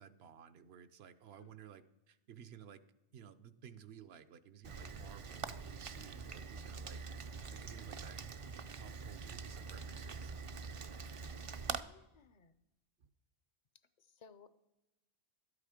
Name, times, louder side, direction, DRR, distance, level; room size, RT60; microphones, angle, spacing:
voice 1, 0.0-2.8 3.1-7.0 7.5-8.2 8.8-10.3 13.0-13.1, right 8 dB, 70° right, 12 dB, 0.9 m, -56 dB
Rain, 4.6-11.8, right 5 dB, 45° right, 0.4 m, -44 dB
voice 2, 11.7-12.5 13.7-14.5, left 6 dB, 50° left, 14 dB, 0.6 m, -61 dB
12.5 x 8.4 x 5.0 m, 0.98 s
omnidirectional pair, 1.1 m